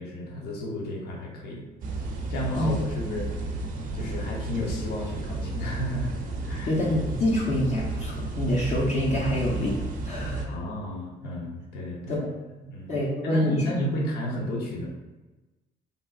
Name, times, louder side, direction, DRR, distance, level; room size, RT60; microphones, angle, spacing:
voice 1, 0.0-1.6 2.3-3.5 3.9-6.1 6.4-6.8 10.5-12.2 12.6-12.9 13.2-14.9, equal, 70° left, -2 dB, 0.8 m, -33 dB
sound 1, 1.8-10.5, right 2 dB, 55° right, 0.6 m, -32 dB
voice 2, 6.6-9.8 10.0-10.6 12.1-12.3 12.9-13.7, left 1 dB, 40° left, -5 dB, 0.7 m, -26 dB
3.4 x 2.6 x 2.4 m, 1.1 s
cardioid pair, 110°, 17 cm